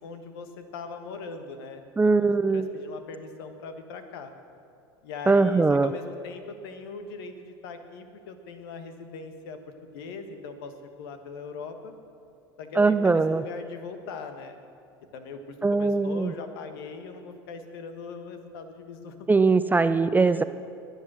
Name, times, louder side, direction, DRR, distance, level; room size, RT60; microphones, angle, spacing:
voice 1, 0.0-1.8 2.2-4.3 5.0-10.7 11.0-11.9 12.6-14.6 15.1-19.1 20.3-20.4, left 4 dB, 70° left, 7 dB, 1.5 m, -40 dB
voice 2, 2.0-2.7 5.3-5.9 12.8-13.4 15.6-16.3 19.3-20.4, right 3 dB, 15° right, 12 dB, 0.5 m, -21 dB
21.0 x 8.3 x 6.4 m, 2.4 s
hypercardioid pair, 80°, 13 cm